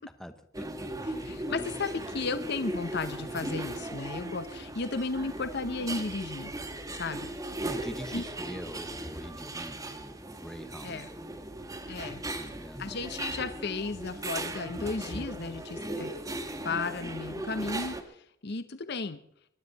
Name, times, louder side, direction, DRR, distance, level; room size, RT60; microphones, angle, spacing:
voice 1, 0.2-0.9 1.3-1.4 7.6-11.6 12.2-12.8, equal, 5° left, 8 dB, 1.0 m, -44 dB
sound 1, 0.5-18.0, right 1 dB, 15° right, 1.5 m, -38 dB
voice 2, 1.2-6.5 6.9-7.5 8.1-8.2 10.8-11.1 11.9-12.2 12.8-16.1 16.6-19.2, left 3 dB, 55° left, 11 dB, 0.8 m, -34 dB
24.0 x 11.5 x 4.0 m, 0.71 s
head